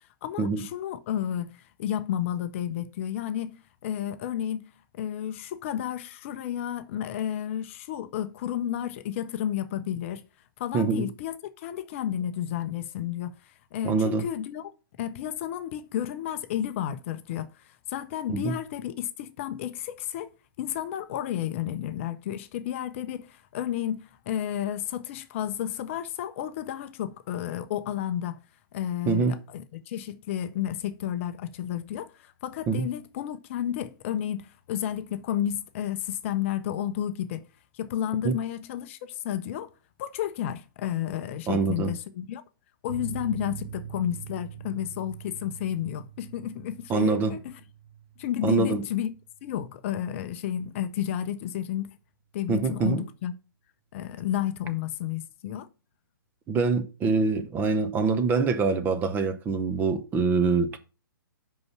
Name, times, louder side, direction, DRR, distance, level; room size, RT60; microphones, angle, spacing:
voice 1, 0.2-10.2 10.6-14.7 15.0-28.4 28.7-37.4 37.7-39.7 40.0-42.4 42.8-47.6 48.2-49.1 49.4-51.9 52.3-53.3 53.9-55.7, left 10 dB, 35° left, 0.6 m, -32 dB
voice 2, 10.7-11.1 13.8-14.2 18.3-18.5 29.1-29.4 32.7-32.9 38.2-38.4 41.5-41.9 46.9-47.3 48.4-48.8 52.5-53.0 56.5-60.8, right 4 dB, 15° right, 0.8 m, -25 dB
sound 1, 42.9-50.0 50.2-50.4 50.7-50.8, right 8 dB, 35° right, 1.7 m, -43 dB
5.6 x 5.3 x 5.7 m
figure-of-eight pair, 125°, 12 cm